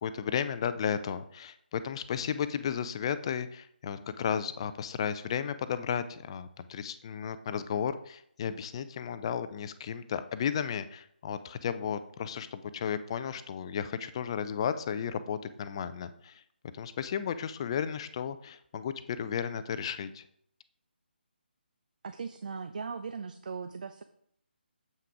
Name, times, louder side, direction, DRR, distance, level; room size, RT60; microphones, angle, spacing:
voice 1, 0.0-16.4 16.7-20.2, left 8 dB, 30° left, 12 dB, 0.5 m, -34 dB
voice 2, 22.0-24.0, right 5 dB, 50° right, 10 dB, 0.5 m, -38 dB
7.8 x 5.7 x 4.9 m, 0.68 s
figure-of-eight pair, 145°, 6 cm